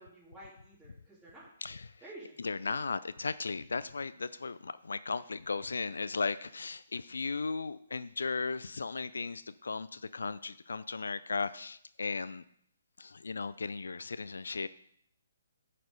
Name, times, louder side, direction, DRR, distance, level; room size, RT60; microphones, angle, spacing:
voice 1, 0.0-1.5 2.0-2.8, right 1 dB, ahead, -9 dB, 3.1 m, -51 dB
voice 2, 2.4-12.4 13.0-14.7, left 4 dB, 70° left, 15 dB, 0.3 m, -36 dB
10.0 x 4.3 x 6.5 m, 0.68 s
figure-of-eight pair, 130°, 0 cm